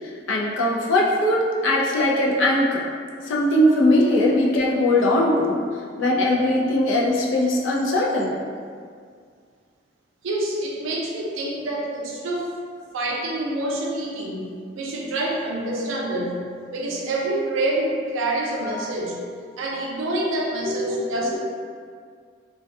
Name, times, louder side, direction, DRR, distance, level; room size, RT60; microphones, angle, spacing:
voice 1, 0.0-2.9 3.2-5.6 6.0-8.4 18.6-18.7 20.6-20.7 21.2-21.4, left 1 dB, 80° left, -2 dB, 0.4 m, -20 dB
voice 2, 10.2-12.5 12.9-19.2 19.6-21.4, right 1 dB, 90° right, -2 dB, 0.4 m, -27 dB
2.2 x 2.2 x 2.6 m, 2.1 s
head